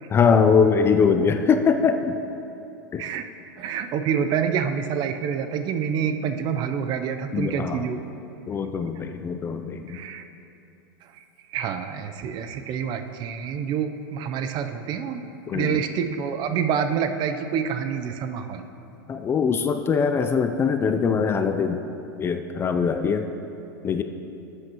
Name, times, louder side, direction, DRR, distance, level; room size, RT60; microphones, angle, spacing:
voice 1, 0.1-2.2 2.9-3.0 7.3-7.9 8.5-10.0 15.5-15.8 19.1-21.8 22.2-23.3 23.8-24.0, left 6 dB, 20° left, 7 dB, 0.4 m, -22 dB
voice 2, 3.6-8.0 9.9-10.2 11.2-11.3 11.5-15.2 15.5-18.6, right 7 dB, 40° right, 8 dB, 0.5 m, -27 dB
12.5 x 7.8 x 2.9 m, 2.8 s
hypercardioid pair, 125°, 12 cm